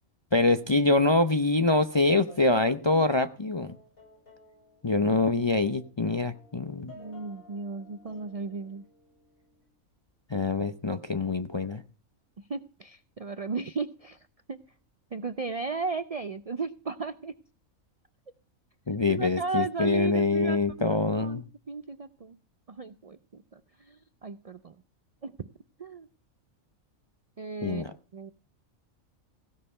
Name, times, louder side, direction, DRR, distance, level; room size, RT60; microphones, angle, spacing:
voice 1, 0.3-3.7 4.8-7.0 10.3-11.8 18.9-21.4 27.6-27.9, left 3 dB, 30° left, 9 dB, 0.5 m, -25 dB
sound 1, 1.9-3.3 3.7-9.7, left 1 dB, 85° left, 8.5 m, -55 dB
voice 2, 7.0-8.8 12.5-14.2 14.5-14.6 15.1-17.3 19.1-22.4 22.7-24.8 25.2-25.5 25.8-26.1 27.4-27.9 28.1-28.3, right 4 dB, 50° right, 13 dB, 0.4 m, -35 dB
16.0 x 6.7 x 5.5 m, 0.39 s
omnidirectional pair, 1.4 m